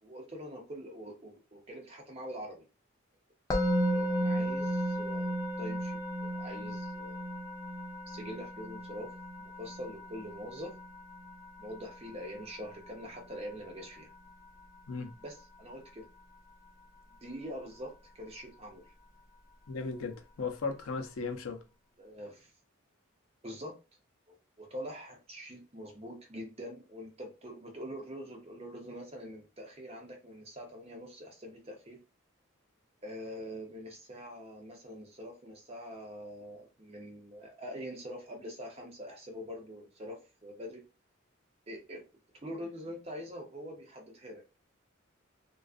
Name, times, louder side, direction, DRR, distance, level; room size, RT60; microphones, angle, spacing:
voice 1, 0.0-2.6 3.5-7.3 8.1-9.1 9.4-10.7 11.6-14.1 15.2-16.0 17.1-18.9 22.0-22.5 23.4-23.7 24.3-32.0 33.0-40.8 41.7-42.0 42.4-44.4, equal, 30° right, 0.7 m, -44 dB
Musical instrument, 3.5-14.6, equal, 15° left, 0.3 m, -35 dB
voice 2, 19.7-21.6, left 4 dB, 90° left, 0.5 m, -36 dB
2.4 x 2.3 x 2.4 m
head